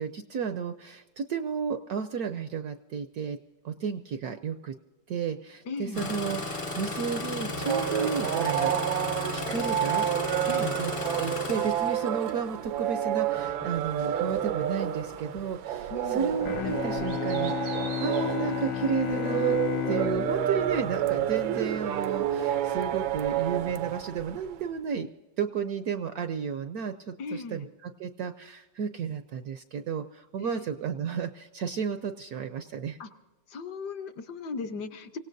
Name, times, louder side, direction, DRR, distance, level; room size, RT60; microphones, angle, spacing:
voice 1, 0.0-3.4 3.6-4.7 5.1-8.7 9.3-10.1 10.6-10.9 11.2-19.6 19.9-25.1 25.4-33.0, right 6 dB, 70° right, 9 dB, 0.9 m, -33 dB
voice 2, 5.7-6.1 10.5-10.8 15.9-16.4 27.2-27.7 30.4-30.6 33.0-33.1 33.5-35.2, left 4 dB, 65° left, 8 dB, 1.4 m, -37 dB
Engine starting, 5.9-12.4 13.4-13.7 14.2-14.6 15.3-15.4, left 2 dB, 35° left, 0.5 m, -34 dB
sound 1, 7.5-24.5, right 11 dB, 85° right, 1.5 m, -30 dB
Bowed string instrument, 16.4-22.0, left 9 dB, 90° left, 1.4 m, -33 dB
25.0 x 17.0 x 2.6 m, 1.1 s
omnidirectional pair, 2.1 m